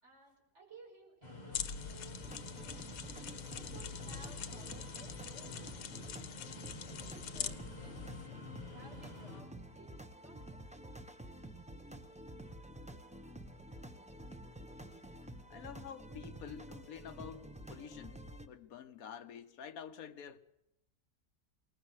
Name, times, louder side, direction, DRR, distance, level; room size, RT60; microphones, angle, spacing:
voice 1, 0.0-3.0 3.5-5.9 7.0-8.2 8.7-10.7, right 3 dB, 45° right, 5.7 m, -58 dB
sound 1, 1.2-9.4, left 2 dB, 25° left, 1.9 m, -50 dB
sound 2, 1.5-8.3, left 8 dB, 85° left, 1.5 m, -44 dB
sound 3, 2.2-18.5, right 1 dB, 5° right, 0.8 m, -50 dB
voice 2, 15.5-20.4, left 8 dB, 65° left, 1.4 m, -49 dB
21.0 x 19.5 x 6.5 m
omnidirectional pair, 1.7 m